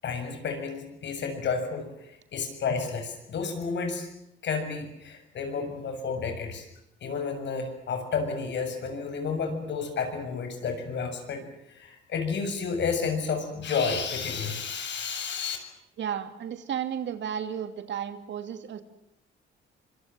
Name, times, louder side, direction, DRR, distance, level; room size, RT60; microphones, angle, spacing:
voice 1, 0.0-4.1 4.4-6.7 7.0-15.6, left 5 dB, 65° left, 6 dB, 7.1 m, -31 dB
voice 2, 16.0-18.8, right 8 dB, 65° right, 9 dB, 2.6 m, -33 dB
25.5 x 23.5 x 7.5 m, 0.81 s
cardioid pair, 90°, 20 cm